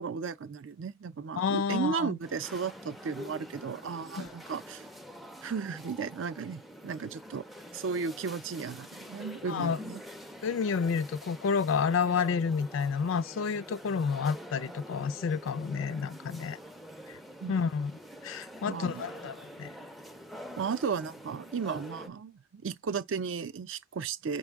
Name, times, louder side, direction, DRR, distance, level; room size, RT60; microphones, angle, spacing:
voice 1, 0.0-4.9 5.4-7.4 7.7-10.0 17.4-17.5 18.6-19.1 20.6-24.4, right 5 dB, 70° right, 0.4 m, -35 dB
voice 2, 1.4-2.2 4.2-4.3 9.5-9.8 10.4-16.6 17.5-17.9 18.2-19.7, left 5 dB, 75° left, 0.4 m, -30 dB
sound 1, 2.2-22.1, equal, ahead, 0.4 m, -46 dB
5.1 x 2.1 x 3.4 m
head